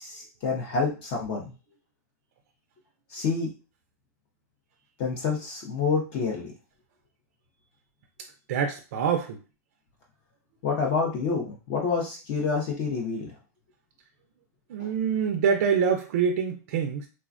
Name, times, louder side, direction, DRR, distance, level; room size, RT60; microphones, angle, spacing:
voice 1, 0.0-1.5 3.1-3.5 5.0-6.5 10.6-13.3 14.8-14.9, left 4 dB, 30° left, -1 dB, 0.5 m, -28 dB
voice 2, 8.5-9.4 14.7-17.1, right 7 dB, 45° right, 3 dB, 0.4 m, -25 dB
3.3 x 2.1 x 2.4 m, 0.33 s
supercardioid pair, 175°, 10 cm